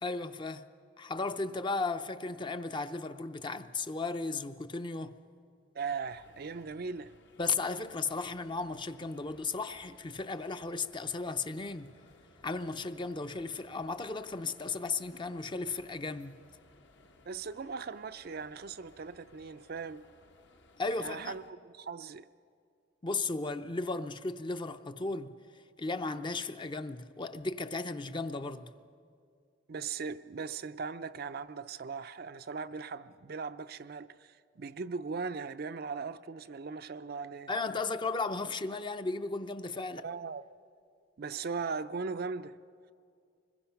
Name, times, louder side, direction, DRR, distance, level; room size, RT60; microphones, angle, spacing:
voice 1, 0.0-0.7 1.0-5.2 7.4-11.9 12.4-16.4 20.8-21.3 23.0-25.3 25.8-28.7 37.5-40.1, left 3 dB, 25° left, 0.6 m, -35 dB
voice 2, 5.7-7.1 17.3-20.0 21.0-22.3 29.7-37.5 40.0-40.4 41.2-42.6, right 5 dB, 50° right, 0.5 m, -39 dB
sound 1, 6.0-21.5, left 2 dB, 65° left, 1.3 m, -61 dB
25.0 x 21.5 x 5.8 m
head